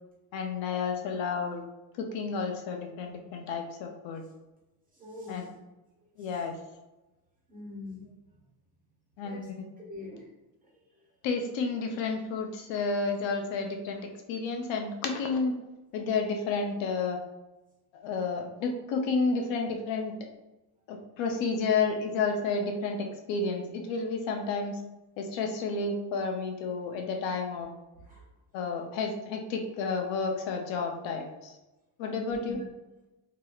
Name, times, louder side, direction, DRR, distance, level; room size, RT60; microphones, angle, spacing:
voice 1, 0.3-1.6 2.0-4.2 5.3-5.4 6.2-6.5 9.2-9.6 11.2-14.0 14.3-15.5 15.9-17.2 18.0-20.1 20.9-24.8 25.2-27.7 28.5-31.6 32.0-32.6, left 4 dB, 65° left, 3 dB, 0.7 m, -31 dB
voice 2, 4.9-5.6 6.0-6.4 7.5-8.2 9.2-9.5 9.8-10.3 10.6-11.1 27.9-28.2 32.2-32.6, left 2 dB, 15° right, -5 dB, 1.3 m, -44 dB
4.8 x 2.9 x 2.3 m, 1.0 s
cardioid pair, 150°, 48 cm